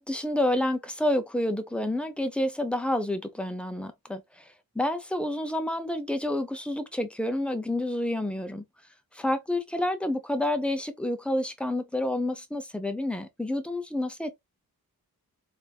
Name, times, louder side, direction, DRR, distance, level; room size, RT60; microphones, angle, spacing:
voice 1, 0.0-4.2 4.8-8.6 9.2-14.3, left 1 dB, 5° left, 0.6 m, -29 dB
3.4 x 2.5 x 2.3 m
wide cardioid pair, 85°, 37 cm